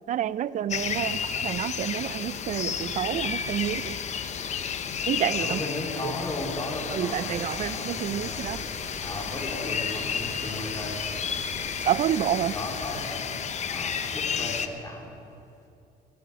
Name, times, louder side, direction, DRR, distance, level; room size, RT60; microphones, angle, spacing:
voice 1, 0.1-4.0 5.1-5.6 6.9-8.6 11.9-12.5, right 10 dB, 50° right, 18 dB, 0.4 m, -28 dB
sound 1, 0.7-14.7, left 7 dB, 45° left, 0.8 m, -32 dB
voice 2, 1.0-1.5 5.4-8.5 9.0-11.4 12.0-13.3 13.7-15.1, left 2 dB, 20° left, -3 dB, 3.8 m, -36 dB
sound 2, 2.2-7.2, left 3 dB, 90° left, 1.6 m, -49 dB
sound 3, 7.1-13.1, right 3 dB, 25° right, 1.0 m, -44 dB
22.0 x 8.0 x 6.3 m, 2.7 s
cardioid pair, 110°, 17 cm